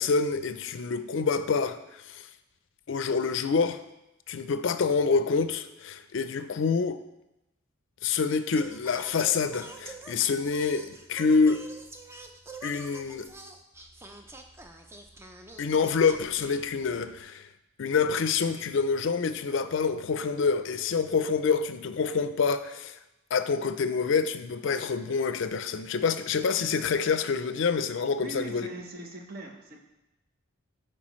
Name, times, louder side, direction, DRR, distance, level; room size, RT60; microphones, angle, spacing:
voice 1, 0.0-2.3 2.9-3.8 4.3-7.0 8.0-11.6 12.6-13.3 15.6-17.5 17.8-23.0 23.3-28.7, left 5 dB, 65° left, 11 dB, 0.4 m, -27 dB
Singing, 8.5-17.2, right 2 dB, 10° right, 0.4 m, -47 dB
voice 2, 28.2-29.8, right 2 dB, 45° right, 2 dB, 0.9 m, -40 dB
10.5 x 4.6 x 3.1 m, 0.95 s
head